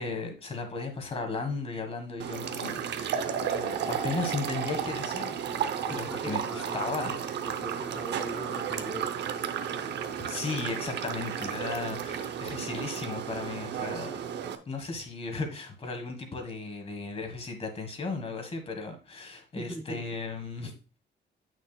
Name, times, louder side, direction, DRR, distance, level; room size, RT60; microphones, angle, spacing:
voice 1, 0.0-5.4 5.9-7.2 10.2-14.2 14.7-20.7, left 3 dB, 30° left, 5 dB, 1.4 m, -35 dB
sound 1, 2.2-14.6, right 8 dB, 65° right, 0.7 m, -33 dB
voice 2, 5.9-7.0 7.5-9.1 19.6-20.1, equal, ahead, 3 dB, 0.4 m, -40 dB
9.0 x 6.2 x 2.3 m, 0.34 s
cardioid pair, 165°, 19 cm